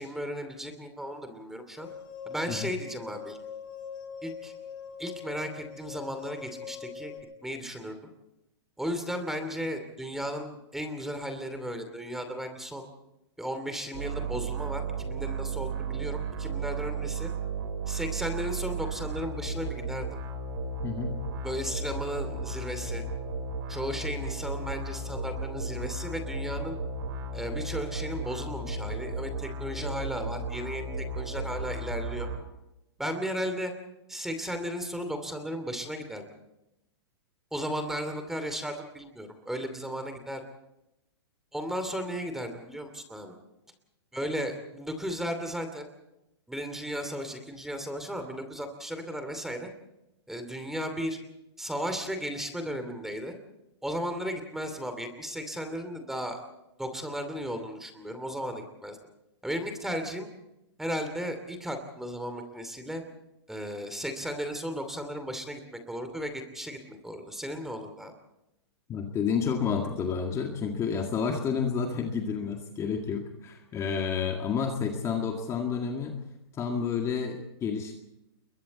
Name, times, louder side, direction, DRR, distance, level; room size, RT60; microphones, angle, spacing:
voice 1, 0.0-1.9 2.3-3.4 4.2-4.5 5.0-7.1 7.4-8.0 8.8-12.9 13.4-17.3 17.9-20.1 21.4-23.0 23.7-26.8 27.3-32.3 33.0-33.7 34.1-36.2 37.5-40.4 41.5-43.4 44.1-45.9 46.5-49.7 50.3-51.2 51.6-53.3 53.8-56.4 56.8-59.0 59.4-60.3 60.8-63.0 63.5-68.1, equal, ahead, 7 dB, 2.6 m, -35 dB
sound 1, 1.8-7.2, left 6 dB, 50° left, 7.1 m, -42 dB
sound 2, 13.9-32.4, right 3 dB, 55° right, 4.9 m, -34 dB
voice 2, 20.8-21.2 68.9-76.1 76.6-77.9, left 6 dB, 20° left, 3 dB, 2.0 m, -30 dB
28.5 x 22.5 x 4.2 m, 0.90 s
hypercardioid pair, 145°, 14 cm